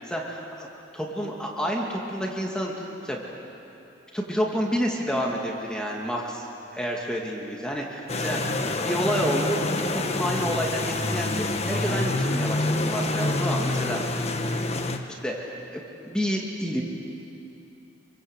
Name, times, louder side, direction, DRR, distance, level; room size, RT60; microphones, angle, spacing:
voice 1, 0.1-0.7 0.9-3.2 4.1-6.5 6.7-8.4 8.8-14.0 15.2-16.8, equal, 5° left, -2 dB, 2.5 m, -29 dB
sound 1, 8.1-15.0, left 2 dB, 35° left, 1.4 m, -27 dB
28.0 x 23.5 x 8.1 m, 2.9 s
head